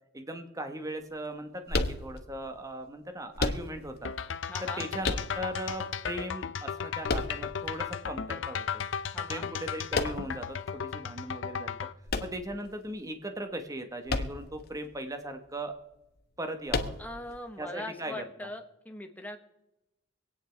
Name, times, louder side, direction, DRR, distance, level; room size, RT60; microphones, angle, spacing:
voice 1, 0.1-4.1 4.6-8.8 9.3-11.8 12.2-15.8 16.4-16.9 17.6-18.5, right 1 dB, 20° right, 7 dB, 1.2 m, -38 dB
sound 1, 1.7-2.5 3.4-4.1 5.0-5.7 7.1-7.9 9.9-10.5 12.1-13.0 14.1-14.6 14.9-15.0 16.7-17.3, left 3 dB, 55° left, 1.0 m, -31 dB
sound 2, 4.0-11.9, left 7 dB, 75° left, 0.6 m, -35 dB
voice 2, 4.5-4.8 9.1-9.5 17.0-19.4, left 1 dB, 10° left, 4 dB, 1.3 m, -41 dB
25.5 x 9.2 x 3.4 m, 0.94 s
head